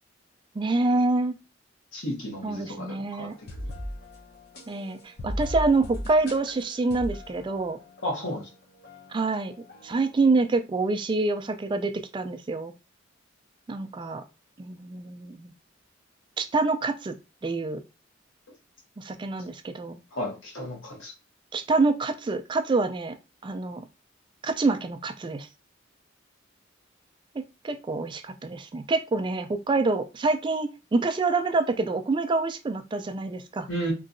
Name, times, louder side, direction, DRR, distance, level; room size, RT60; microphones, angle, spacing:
voice 1, 0.6-1.3 2.4-3.3 4.7-7.8 9.1-9.5 9.8-12.7 13.7-14.2 14.6-15.5 16.4-17.1 17.4-17.8 19.0-20.0 21.5-23.2 23.4-23.8 24.4-25.5 27.6-33.7, right 3 dB, 25° right, 0.3 m, -26 dB
voice 2, 1.9-3.3 8.0-8.5 20.1-21.1 33.7-33.9, equal, 85° left, 1.4 m, -33 dB
sound 1, 3.3-8.5 8.8-10.4, equal, 55° left, 0.8 m, -38 dB
3.0 x 2.7 x 2.6 m
head